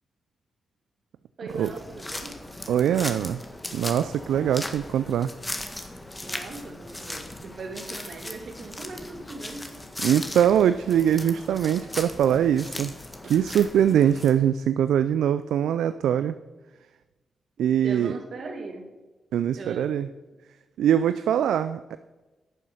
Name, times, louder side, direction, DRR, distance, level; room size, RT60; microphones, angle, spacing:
voice 1, 1.4-2.4 6.2-9.8 17.8-19.0 19.5-20.2, right 3 dB, 65° right, 4 dB, 1.8 m, -39 dB
sound 1, 1.5-14.3, left 1 dB, 20° left, 1.7 m, -38 dB
voice 2, 2.7-3.4 3.7-5.3 10.0-12.9 13.2-16.3 17.6-18.2 19.3-20.1 20.8-22.0, right 9 dB, 80° right, 12 dB, 0.3 m, -22 dB
10.0 x 6.8 x 6.5 m, 1.2 s
supercardioid pair, 40°, 0 cm